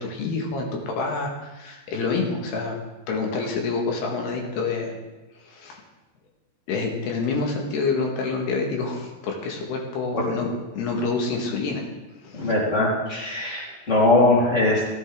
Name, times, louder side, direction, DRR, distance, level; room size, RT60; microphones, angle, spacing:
voice 1, 0.0-2.8 3.1-5.0 5.4-5.8 6.7-10.5 10.7-11.8 12.2-12.5 13.6-13.8, left 4 dB, 90° left, 0 dB, 3.8 m, -27 dB
voice 2, 12.3-14.9, left 2 dB, 15° left, -6 dB, 4.0 m, -21 dB
16.0 x 15.0 x 3.8 m, 1.2 s
omnidirectional pair, 4.6 m